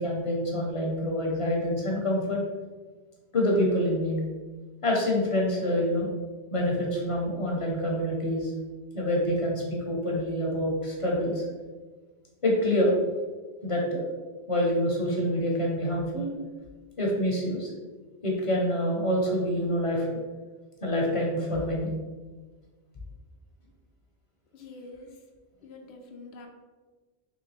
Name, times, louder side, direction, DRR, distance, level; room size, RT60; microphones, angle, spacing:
voice 1, 0.0-2.4 3.3-4.2 4.8-6.1 6.5-8.5 8.9-11.5 12.4-12.9 13.6-14.0 14.5-16.3 17.0-17.7 18.2-20.1 20.8-21.9, equal, 35° left, -2 dB, 0.8 m, -26 dB
voice 2, 24.5-25.2 25.6-26.5, left 3 dB, 75° left, 2 dB, 0.9 m, -46 dB
3.8 x 3.2 x 3.3 m, 1.3 s
omnidirectional pair, 1.1 m